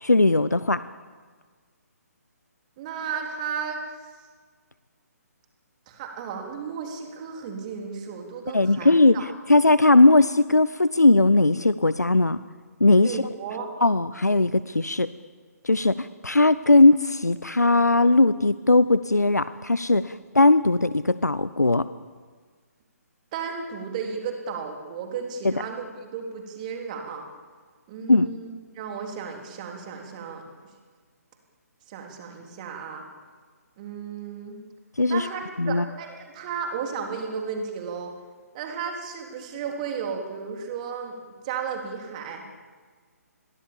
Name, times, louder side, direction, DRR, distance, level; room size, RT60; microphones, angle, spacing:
voice 1, 0.0-0.8 8.5-9.2 9.5-12.4 12.8-13.2 13.8-15.1 15.6-21.9 25.4-25.5 28.1-28.3 35.0-35.3 35.6-35.8, left 2 dB, 80° left, 15 dB, 0.7 m, -19 dB
voice 2, 2.8-3.8 5.9-9.3 13.0-13.7 23.3-27.3 27.9-30.4 31.9-33.1 33.8-34.6 35.1-38.1 38.5-41.2 41.4-42.5, right 6 dB, 25° right, 2 dB, 3.6 m, -34 dB
29.0 x 22.0 x 7.2 m, 1.5 s
figure-of-eight pair, 135°, 9 cm